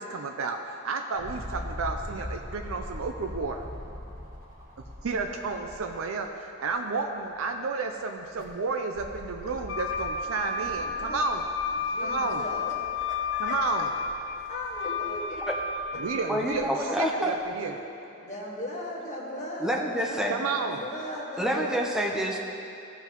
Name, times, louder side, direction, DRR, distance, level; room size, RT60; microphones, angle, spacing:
voice 1, 0.0-3.6 5.0-11.4 12.0-12.4 13.4-13.9 16.0-17.8 20.3-20.8, right 4 dB, 90° right, 4 dB, 0.5 m, -32 dB
sound 1, 1.1-6.2 6.7-6.8 8.1-16.6 17.4-17.5, left 1 dB, 40° right, 1.5 m, -43 dB
Wind instrument woodwind instrument, 9.7-16.4, left 5 dB, 65° left, 0.7 m, -32 dB
voice 2, 10.6-11.3 11.8-13.6 14.5-15.3 17.7-17.8 18.2-22.0, left 1 dB, 35° left, -5 dB, 1.7 m, -38 dB
voice 3, 16.3-17.3 19.6-20.4 21.4-22.4, equal, 5° right, -1 dB, 0.7 m, -27 dB
16.0 x 5.6 x 3.0 m, 2.7 s
head